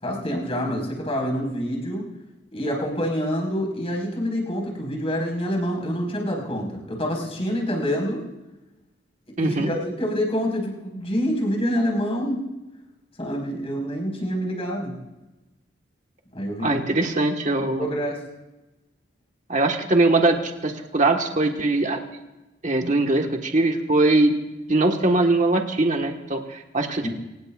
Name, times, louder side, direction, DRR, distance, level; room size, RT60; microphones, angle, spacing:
voice 1, 0.0-2.1 2.5-8.2 9.4-12.4 13.2-15.0 16.3-16.8 17.8-18.2 27.0-27.1, equal, 35° left, 0 dB, 4.8 m, -26 dB
voice 2, 9.4-9.7 16.6-17.9 19.5-22.0 22.6-24.3 24.7-27.1, right 2 dB, 40° right, 3 dB, 1.4 m, -21 dB
24.5 x 19.0 x 2.5 m, 1.0 s
head